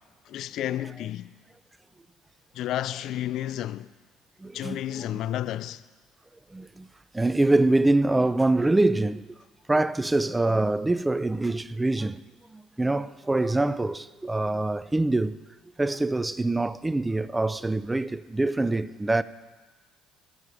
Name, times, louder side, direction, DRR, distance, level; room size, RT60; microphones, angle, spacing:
voice 1, 0.3-1.3 2.5-3.9 4.5-5.8, left 12 dB, 65° left, 0.3 m, -31 dB
voice 2, 4.4-5.0 6.5-6.9 7.1-9.4 9.7-12.2 12.5-15.4 15.8-19.2, right 2 dB, 15° right, 0.4 m, -24 dB
16.5 x 6.6 x 4.9 m
supercardioid pair, 80°, 0 cm